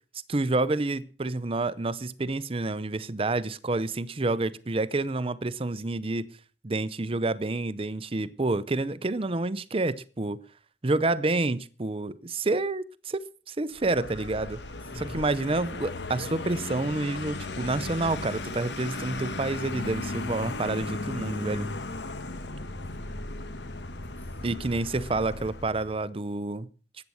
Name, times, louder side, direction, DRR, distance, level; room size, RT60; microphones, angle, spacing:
voice 1, 0.3-6.3 6.6-10.4 10.8-14.6 15.1-21.7 24.4-26.7, right 2 dB, 35° right, 0.7 m, -28 dB
Vehicle, 13.7-26.0, left 2 dB, 80° left, 1.3 m, -36 dB
voice 2, 14.8-15.2 20.7-20.9 22.1-23.4 24.0-24.5, right 1 dB, 10° left, 4.2 m, -49 dB
14.5 x 9.5 x 6.4 m
head